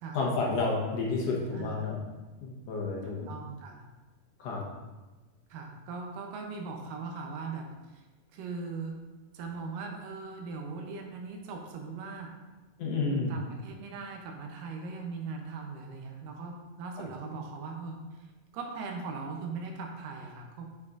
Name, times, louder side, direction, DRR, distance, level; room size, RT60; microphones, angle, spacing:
voice 1, 0.1-2.0 2.4-3.3 4.4-4.6 12.8-13.3, left 3 dB, 65° left, -2 dB, 1.8 m, -30 dB
voice 2, 1.5-1.8 3.0-3.8 5.5-8.0 8.3-9.0 9.3-12.3 13.1-18.3 18.5-20.7, right 4 dB, 90° right, 2 dB, 2.5 m, -40 dB
8.1 x 6.0 x 2.5 m, 1.2 s
omnidirectional pair, 3.8 m